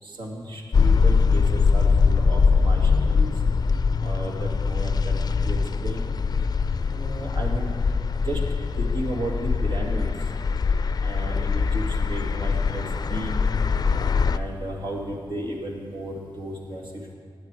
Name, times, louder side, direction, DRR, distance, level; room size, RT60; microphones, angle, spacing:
voice 1, 0.0-3.3 4.0-6.1 6.9-7.7 8.2-8.4 8.8-10.1 11.0-12.8 13.1-13.5 14.3-17.1, right 1 dB, 75° right, 0 dB, 2.2 m, -34 dB
sound 1, 0.7-14.4, left 5 dB, 50° left, 0.4 m, -22 dB
16.0 x 9.8 x 4.9 m, 2.3 s
wide cardioid pair, 100°, 8 cm